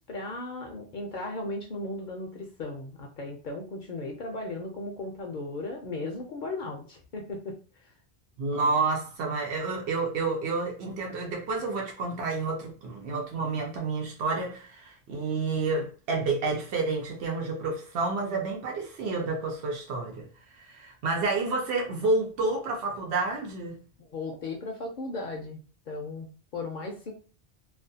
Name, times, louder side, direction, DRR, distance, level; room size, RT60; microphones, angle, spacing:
voice 1, 0.1-7.6 24.0-25.6 25.9-27.1, left 2 dB, 60° left, 0.6 m, -36 dB
voice 2, 8.4-23.8, right 3 dB, 85° right, 0.9 m, -29 dB
2.4 x 2.2 x 2.6 m
omnidirectional pair, 1.1 m